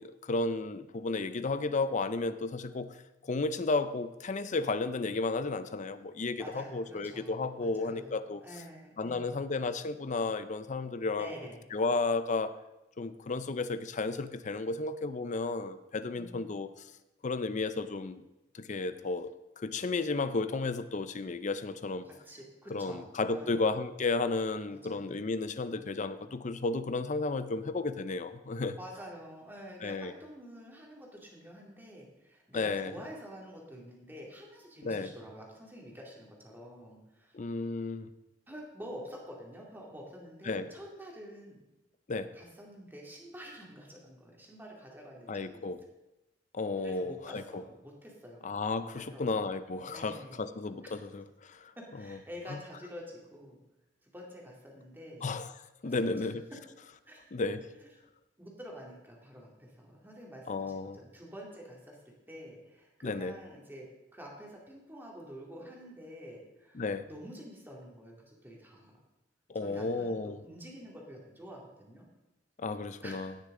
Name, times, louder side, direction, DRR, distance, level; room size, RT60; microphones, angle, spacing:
voice 1, 0.0-2.9 3.2-8.4 9.0-11.3 11.7-12.6 13.0-16.7 17.2-18.2 18.5-22.1 22.7-28.8 29.8-30.1 32.5-32.9 34.8-35.1 37.3-38.1 40.5-40.7 42.1-42.3 45.3-45.8 46.5-47.6 48.4-51.7 55.2-55.5 55.8-56.4 57.3-57.7 60.5-61.0 63.0-63.3 66.8-67.1 69.5-70.4 72.6-73.3, left 3 dB, 45° left, 12 dB, 0.6 m, -33 dB
voice 2, 6.4-9.4 11.1-11.7 16.1-16.4 22.0-23.7 24.7-25.3 28.8-37.4 38.5-41.7 42.3-45.7 46.8-48.5 48.9-49.2 49.9-50.5 50.8-51.0 51.9-53.6 54.0-55.3 55.8-56.3 57.0-57.4 57.8-57.9 58.4-62.0 62.3-63.9 64.1-69.0 69.5-72.1 73.0-73.3, equal, 10° right, -2 dB, 2.3 m, -48 dB
17.0 x 6.6 x 3.8 m, 0.96 s
head